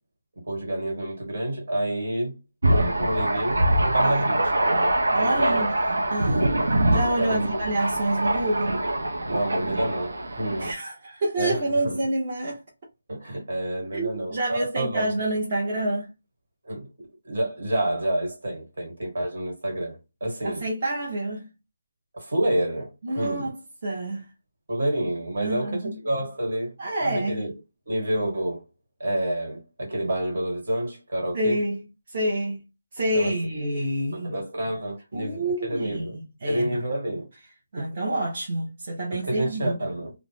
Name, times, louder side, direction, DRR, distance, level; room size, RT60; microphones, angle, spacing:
voice 1, 0.5-2.4 2.7-4.7 5.2-5.6 7.2-7.6 9.3-10.7 11.4-12.0 13.1-15.1 16.6-16.9 17.2-20.7 22.1-23.5 24.7-26.7 27.0-27.6 27.9-28.6 29.0-31.6 33.1-33.3 34.1-36.2 36.5-37.3 37.8-38.0 39.1-40.1, right 1 dB, 70° right, 1.5 m, -28 dB
Thunder, 2.6-10.7, right 1 dB, 90° right, 0.5 m, -24 dB
voice 2, 5.1-8.8 10.6-12.6 13.9-16.1 20.4-21.5 23.0-24.3 25.4-26.0 26.8-27.5 31.3-31.8 32.1-32.6 32.9-34.3 35.1-36.8 37.7-39.8, right 1 dB, 45° right, 0.7 m, -28 dB
2.3 x 2.0 x 3.2 m
hypercardioid pair, 165°, 0 cm